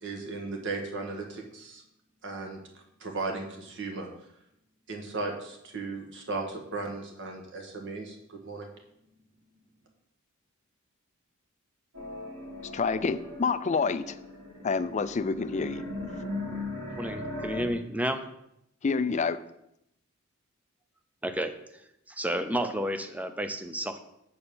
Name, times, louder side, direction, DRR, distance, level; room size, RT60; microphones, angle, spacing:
voice 1, 0.0-1.8 2.2-2.6 3.0-4.1 4.9-8.7, right 3 dB, 60° right, 2 dB, 1.7 m, -36 dB
sound 1, 11.9-17.6, left 2 dB, 85° right, 2.9 m, -38 dB
voice 2, 12.7-14.2 14.6-15.8 18.8-19.4, left 4 dB, 35° left, 12 dB, 0.4 m, -28 dB
voice 3, 16.9-18.3 21.2-24.0, equal, 5° right, 8 dB, 0.6 m, -32 dB
7.7 x 4.3 x 7.0 m, 0.79 s
head